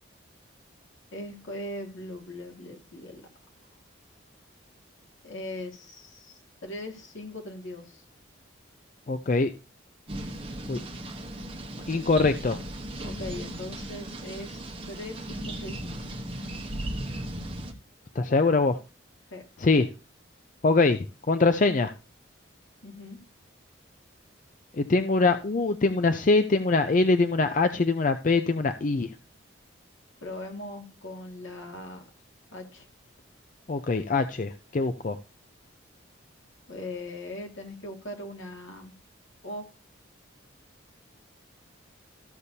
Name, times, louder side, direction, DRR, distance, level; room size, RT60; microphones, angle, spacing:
voice 1, 1.1-3.2 5.2-8.0 13.0-16.0 19.3-19.4 22.8-23.2 30.2-32.0 32.5-32.9 36.7-38.9 39.4-39.7, left 1 dB, 75° left, 2.2 m, -40 dB
voice 2, 9.1-9.5 10.7-10.8 11.9-12.6 18.2-18.8 19.6-19.9 20.6-21.9 24.7-29.1 33.7-35.2, left 3 dB, 40° left, 0.4 m, -23 dB
sound 1, 10.1-17.7, right 1 dB, 25° right, 1.1 m, -36 dB
13.5 x 6.7 x 2.8 m
head